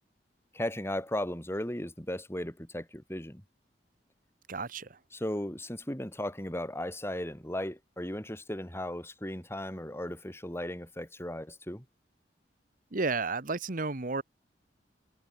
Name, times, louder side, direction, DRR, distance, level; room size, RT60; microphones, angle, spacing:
voice 1, 0.5-3.4 5.1-11.8, left 1 dB, 15° left, 5.4 m, -36 dB
voice 2, 4.5-5.0 12.9-14.2, right 3 dB, 50° right, 1.3 m, -32 dB
head